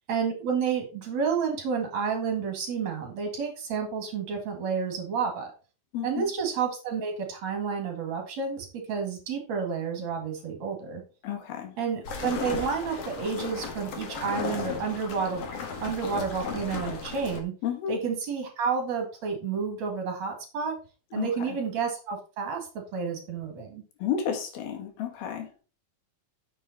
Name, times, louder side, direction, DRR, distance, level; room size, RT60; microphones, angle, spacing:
voice 1, 0.1-5.5 6.0-11.0 11.8-15.5 15.8-17.5 17.9-20.8 21.1-23.8, right 6 dB, 50° right, 3 dB, 3.0 m, -30 dB
voice 2, 5.9-6.3 11.2-11.8 17.6-18.0 21.2-21.6 24.0-25.5, left 8 dB, 85° left, 4 dB, 3.7 m, -32 dB
sound 1, 12.1-17.4, left 5 dB, 50° left, 2.2 m, -35 dB
9.1 x 7.0 x 4.1 m, 0.34 s
omnidirectional pair, 4.2 m